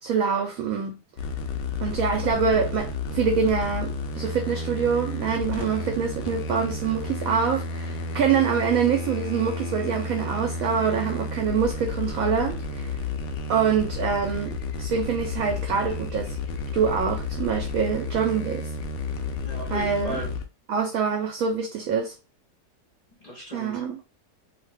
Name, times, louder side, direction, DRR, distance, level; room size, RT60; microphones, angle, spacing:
voice 1, 0.0-1.0 1.8-13.0 13.5-16.4 16.7-18.7 19.7-20.2 20.7-22.1 23.5-24.0, right 6 dB, 70° right, 0.8 m, -25 dB
sound 1, 1.2-20.4, left 3 dB, 85° left, 0.6 m, -31 dB
voice 2, 19.4-20.3 23.2-24.0, equal, 35° left, 0.6 m, -37 dB
2.5 x 2.4 x 3.3 m
omnidirectional pair, 1.8 m